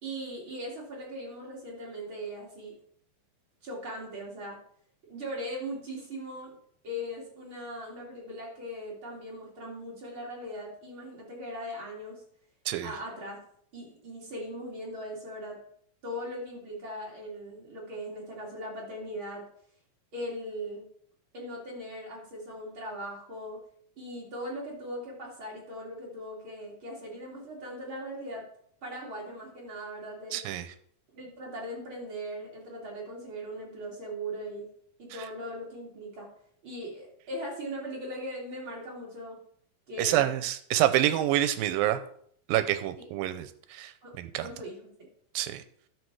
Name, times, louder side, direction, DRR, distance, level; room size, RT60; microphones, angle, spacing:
voice 1, 0.0-2.7 3.6-4.6 5.0-6.6 6.8-12.2 12.8-13.4 13.7-15.6 16.0-19.5 20.1-20.9 21.3-23.6 24.0-28.5 28.8-30.4 31.1-34.7 35.0-36.3 36.6-39.4 39.9-40.3 43.0-43.1 44.0-44.1 44.4-44.8, equal, 40° right, -3 dB, 3.0 m, -39 dB
voice 2, 30.3-30.7 40.0-42.0 42.5-44.5 45.4-45.6, right 13 dB, 85° right, 12 dB, 2.4 m, -27 dB
10.5 x 7.1 x 4.7 m, 0.63 s
omnidirectional pair, 4.0 m